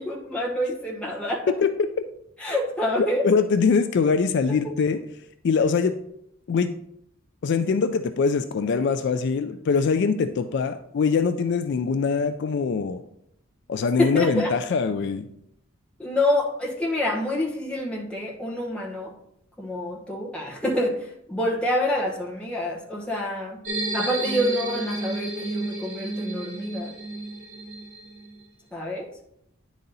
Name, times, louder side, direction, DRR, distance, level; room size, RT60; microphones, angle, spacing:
voice 1, 0.0-1.4 2.4-3.2 14.0-14.5 16.0-19.1 19.6-23.6 23.9-26.9 28.7-29.1, left 1 dB, 5° left, -3 dB, 1.1 m, -27 dB
voice 2, 3.2-5.0 5.4-5.9 6.5-6.7 7.4-13.0 13.7-15.3, left 5 dB, 55° left, 10 dB, 0.3 m, -23 dB
sound 1, 23.6-28.4, right 2 dB, 35° right, 1.2 m, -32 dB
9.5 x 4.1 x 3.9 m, 0.76 s
head